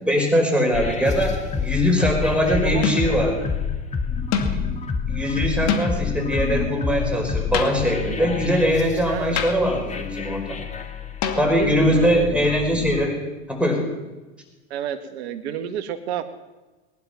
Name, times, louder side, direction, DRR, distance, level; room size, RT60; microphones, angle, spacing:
voice 1, 0.0-3.5 4.5-4.7 5.1-10.6 11.4-13.2 13.5-13.8, equal, 5° right, 1 dB, 5.1 m, -21 dB
sound 1, 0.7-13.1, left 6 dB, 20° left, 2.2 m, -28 dB
sound 2, 1.0-1.4 2.8-3.2 4.3-4.7 5.7-6.2 7.5-8.1 9.4-9.8 11.2-11.9, left 6 dB, 50° left, 2.4 m, -27 dB
voice 2, 2.4-2.8 9.1-9.4 11.4-12.3 14.7-16.3, right 9 dB, 70° right, 8 dB, 1.8 m, -30 dB
20.0 x 11.0 x 5.9 m, 1.2 s
hypercardioid pair, 100°, 33 cm